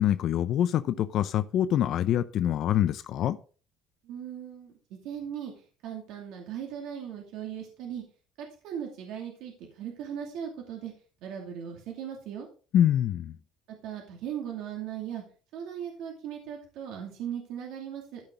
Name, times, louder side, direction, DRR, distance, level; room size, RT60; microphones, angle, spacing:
voice 1, 0.0-3.4 12.7-13.3, left 11 dB, 50° left, 0.5 m, -25 dB
voice 2, 4.0-5.5 5.8-8.0 8.4-10.9 11.2-12.5 13.7-15.2 15.5-18.2, right 9 dB, 70° right, 2.5 m, -38 dB
14.0 x 5.9 x 3.9 m
cardioid pair, 155°, 0 cm